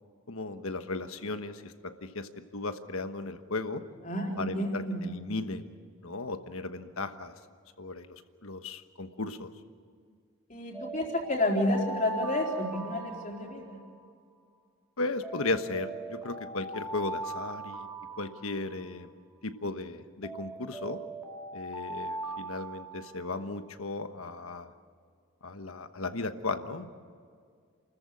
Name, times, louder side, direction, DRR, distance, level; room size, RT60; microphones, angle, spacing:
voice 1, 0.3-1.7 2.0-3.8 4.4-5.7 6.0-7.3 7.8-9.5 15.0-17.9 18.2-19.1 19.4-21.0 21.5-24.7 25.4-26.9, left 3 dB, 75° left, 9 dB, 1.3 m, -36 dB
voice 2, 4.1-5.1 10.5-13.8, left 1 dB, 35° left, -1 dB, 4.0 m, -30 dB
Alarm, 10.7-14.1 15.2-19.1 20.2-23.5, right 2 dB, 10° right, 2.3 m, -40 dB
29.0 x 14.5 x 8.5 m, 2.1 s
head